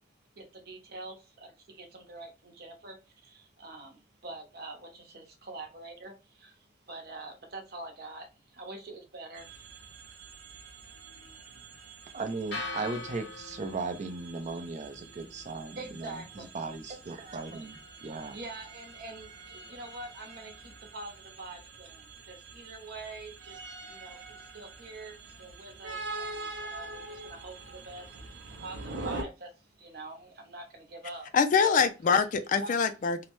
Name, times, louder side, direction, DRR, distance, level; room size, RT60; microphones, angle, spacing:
voice 1, 0.4-9.8 15.8-16.5 18.3-31.3 31.6-31.9 32.6-32.7, right 2 dB, 60° right, 0.8 m, -45 dB
sound 1, 9.4-29.2, right 3 dB, 90° right, 0.6 m, -45 dB
voice 2, 12.1-18.4, right 3 dB, 40° right, 0.5 m, -37 dB
sound 2, 12.5-20.6, left 3 dB, 85° left, 0.8 m, -46 dB
voice 3, 31.3-33.3, left 6 dB, 45° left, 0.3 m, -24 dB
2.7 x 2.1 x 3.0 m
head